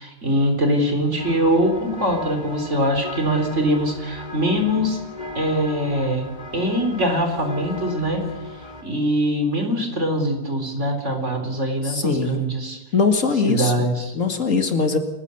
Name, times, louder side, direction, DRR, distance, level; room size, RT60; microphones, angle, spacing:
voice 1, 0.0-5.0 5.3-6.3 6.5-8.2 8.8-12.8 13.4-14.1, equal, 50° right, 4 dB, 4.2 m, -22 dB
sound 1, 1.2-8.8, left 2 dB, 30° left, 3.1 m, -36 dB
voice 2, 11.8-12.5 12.9-13.7 14.1-15.0, left 4 dB, 60° left, 6 dB, 2.3 m, -21 dB
29.0 x 15.5 x 7.0 m, 0.99 s
omnidirectional pair, 1.6 m